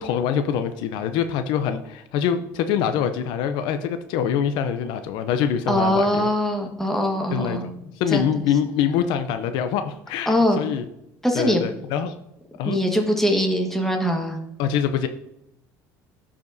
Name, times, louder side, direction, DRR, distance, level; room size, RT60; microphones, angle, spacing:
voice 1, 0.0-6.3 7.3-10.8 11.3-12.2 12.6-12.8 14.6-15.1, left 8 dB, 75° left, 9 dB, 0.6 m, -24 dB
voice 2, 5.7-7.7 8.1-8.3 10.3-10.6 11.2-11.6 12.6-14.4, equal, 5° left, 2 dB, 1.5 m, -22 dB
12.0 x 5.0 x 2.7 m, 0.81 s
supercardioid pair, 105°, 8 cm